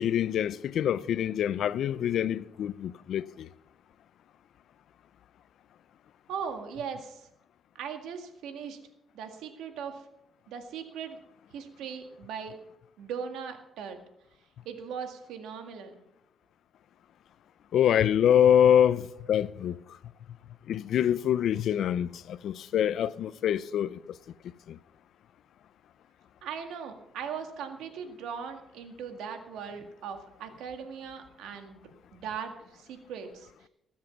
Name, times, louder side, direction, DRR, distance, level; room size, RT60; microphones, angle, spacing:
voice 1, 0.0-3.5 17.7-19.8 20.7-24.2 24.7-24.8, left 9 dB, 70° left, 0.5 m, -25 dB
voice 2, 6.3-7.3 7.8-8.8 9.1-10.0 10.5-11.2 11.5-12.6 13.0-14.0 14.7-15.9 26.4-31.8 32.1-33.5, right 7 dB, 85° right, 1.9 m, -39 dB
20.0 x 7.5 x 5.8 m
cardioid pair, 90°, 0 cm